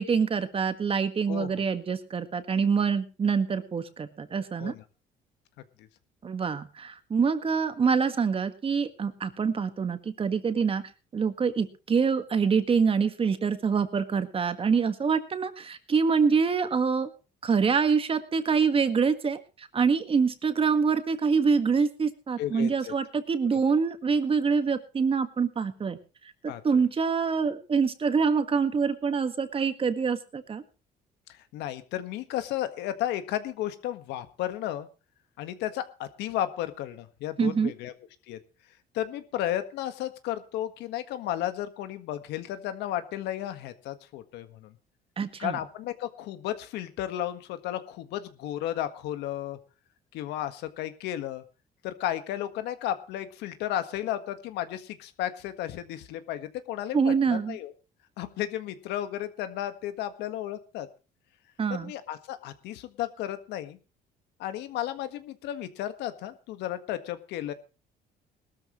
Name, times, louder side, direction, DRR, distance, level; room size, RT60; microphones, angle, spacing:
voice 1, 0.0-4.7 6.2-10.8 11.1-17.1 17.4-26.0 26.4-30.6 37.4-37.7 45.2-45.6 56.9-57.6 61.6-61.9, right 5 dB, 35° right, 10 dB, 1.7 m, -25 dB
voice 2, 22.4-22.9 23.5-23.6 26.5-26.6 31.3-34.9 35.4-37.9 38.3-38.4 38.9-44.7 45.4-49.6 50.1-51.4 51.8-57.7 58.2-60.9 61.7-63.8 64.4-67.5, left 12 dB, 85° left, 10 dB, 1.6 m, -33 dB
19.5 x 13.0 x 3.1 m, 0.32 s
cardioid pair, 110°, 17 cm